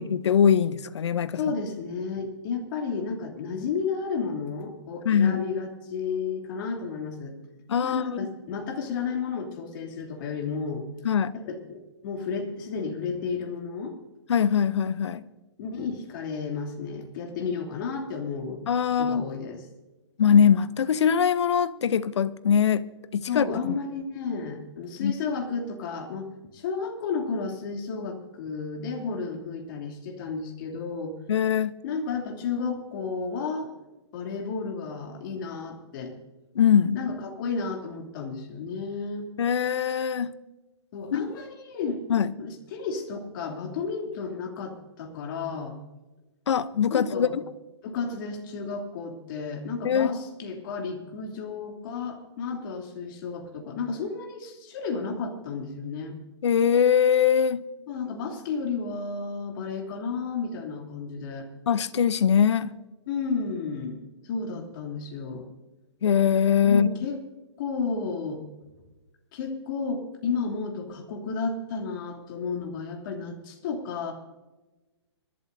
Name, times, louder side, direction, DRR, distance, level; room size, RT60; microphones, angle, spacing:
voice 1, 0.0-1.4 5.0-5.4 7.7-8.0 11.0-11.3 14.3-15.2 18.7-19.2 20.2-22.8 23.1-23.7 25.0-25.1 31.3-31.7 36.5-37.0 39.4-40.3 41.1-41.3 42.1-42.3 46.5-47.4 49.8-50.2 56.4-57.6 61.7-62.7 66.0-66.9, left 8 dB, 70° left, 0.8 m, -22 dB
voice 2, 1.3-7.3 7.8-10.9 11.3-14.0 15.6-18.6 19.0-19.6 23.3-31.2 31.8-33.7 34.1-36.1 36.9-39.3 40.9-45.8 46.9-47.4 47.8-56.2 57.9-61.5 63.1-65.5 66.6-67.2 67.6-68.4 69.3-74.1, left 5 dB, 45° left, 3.0 m, -32 dB
26.5 x 12.0 x 2.7 m
hypercardioid pair, 140°, 15 cm